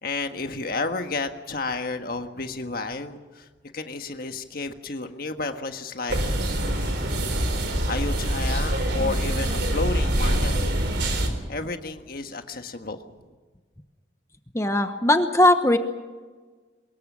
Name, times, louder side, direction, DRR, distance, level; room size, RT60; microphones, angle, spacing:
voice 1, 0.0-3.5 3.7-6.2 7.9-10.8 11.5-13.3, left 3 dB, 50° left, 6 dB, 1.6 m, -31 dB
sound 1, 6.1-11.3, right 1 dB, 65° right, 3.8 m, -25 dB
voice 2, 14.5-15.8, left 1 dB, 15° left, 7 dB, 1.0 m, -19 dB
24.0 x 21.5 x 6.3 m, 1.4 s
head